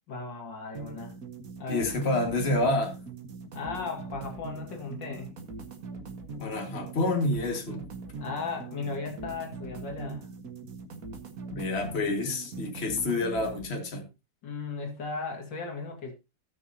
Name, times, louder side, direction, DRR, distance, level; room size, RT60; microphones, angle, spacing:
voice 1, 0.1-1.1 1.6-2.2 3.5-5.3 8.2-10.3 14.4-16.1, left 4 dB, 80° left, 2.8 m, -36 dB
sound 1, 0.8-13.7, right 3 dB, 50° right, 1.9 m, -42 dB
voice 2, 1.7-2.9 6.4-7.9 11.5-14.0, left 2 dB, 35° left, 2.2 m, -28 dB
17.5 x 6.6 x 2.8 m
omnidirectional pair, 2.0 m